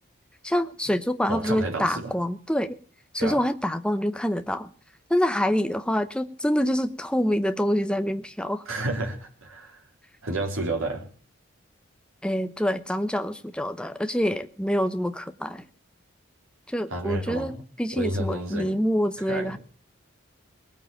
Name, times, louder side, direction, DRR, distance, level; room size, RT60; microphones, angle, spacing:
voice 1, 0.4-2.8 3.1-4.7 5.1-8.6 12.2-15.6 16.7-19.6, equal, 5° left, 10 dB, 0.9 m, -26 dB
voice 2, 1.3-2.1 3.2-3.4 8.7-9.8 10.2-11.1 16.9-17.5 18.0-18.8 19.2-19.5, right 2 dB, 90° right, 0 dB, 4.1 m, -30 dB
19.5 x 9.0 x 7.3 m, 0.43 s
head